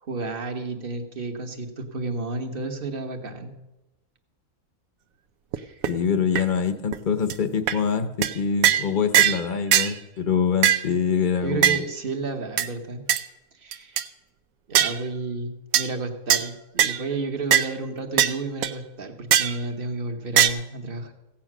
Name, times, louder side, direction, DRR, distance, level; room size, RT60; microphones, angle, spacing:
voice 1, 0.0-3.6 5.6-5.8 11.4-13.0 13.6-14.0 14.7-21.1, right 3 dB, 40° right, 5 dB, 1.4 m, -32 dB
sound 1, 5.5-5.6 5.8-5.9 6.4-6.5 6.9-7.0 7.3-7.4 7.7-7.8 8.2-8.3 8.6-8.9 9.1-9.4 9.7-9.9 10.6-10.9 11.6-11.8 12.6-12.7 13.1-13.2 13.7-14.0 14.7-15.0 15.7-15.9 16.3-16.4 16.8-17.0 17.5-17.7 18.2-18.3 18.6-18.7 19.3-19.6 20.4-20.5, right 10 dB, 80° right, 1.1 m, -19 dB
voice 2, 5.9-11.8, left 6 dB, 45° left, 10 dB, 0.8 m, -25 dB
15.5 x 8.6 x 6.1 m, 0.98 s
omnidirectional pair, 1.5 m